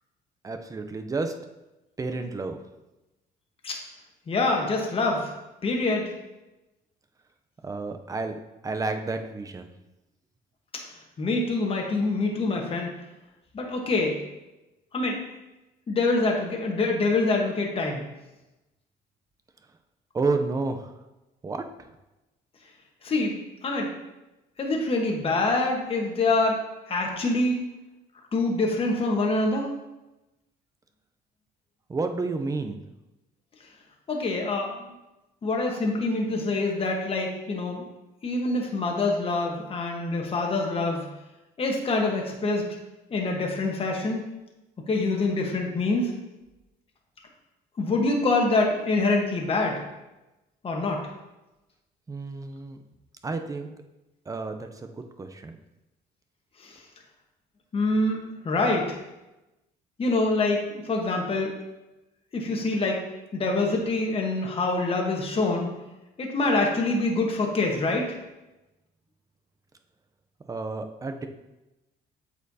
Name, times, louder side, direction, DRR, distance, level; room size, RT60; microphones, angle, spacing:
voice 1, 0.4-1.3 2.0-2.6 7.6-8.4 8.6-9.7 20.1-21.0 21.4-21.9 31.9-32.8 52.1-52.8 53.2-53.8 54.3-55.6 70.5-71.3, right 3 dB, 20° right, 6 dB, 0.6 m, -31 dB
voice 2, 4.3-5.3 5.6-6.0 11.2-12.9 13.5-14.2 14.9-15.2 15.9-18.0 23.0-23.4 23.6-23.9 24.6-27.7 28.3-29.7 34.1-34.9 35.4-37.8 38.2-41.1 41.6-42.6 43.1-44.3 44.9-46.1 47.8-49.8 50.6-51.0 56.6-56.8 57.7-59.0 60.0-61.5 62.3-63.0 63.3-65.7 66.2-68.2, left 2 dB, 35° left, 0 dB, 1.2 m, -25 dB
8.0 x 4.4 x 2.8 m, 1.0 s
cardioid pair, 110°, 17 cm